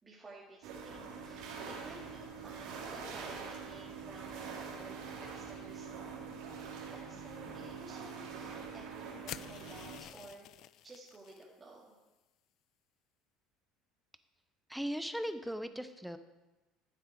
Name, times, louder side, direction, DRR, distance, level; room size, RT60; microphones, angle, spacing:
voice 1, 0.0-6.1 6.9-10.5 10.8-11.9, right 2 dB, 20° right, -5 dB, 2.4 m, -54 dB
sound 1, 0.6-10.0, right 5 dB, 75° right, 3.4 m, -44 dB
sound 2, 9.3-11.4, left 13 dB, 60° left, 0.4 m, -48 dB
voice 2, 14.7-16.2, equal, ahead, 10 dB, 0.9 m, -38 dB
14.5 x 7.9 x 4.6 m, 1.1 s
supercardioid pair, 100°, 0 cm